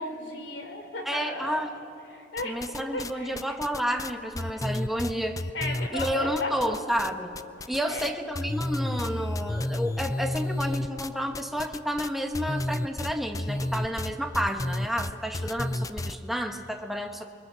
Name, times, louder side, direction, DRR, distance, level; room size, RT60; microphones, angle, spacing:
voice 1, 0.0-1.6 2.1-3.4 5.5-6.8 7.9-8.1, left 1 dB, 70° left, 5 dB, 3.6 m, -35 dB
voice 2, 1.0-1.7 2.4-5.4 5.9-7.3 7.7-17.3, equal, ahead, 4 dB, 1.3 m, -30 dB
sound 1, 2.4-3.1 3.4-7.1 7.3-8.1 8.3-16.2, left 1 dB, 20° left, 0.5 m, -31 dB
29.0 x 23.0 x 7.1 m, 2.8 s
head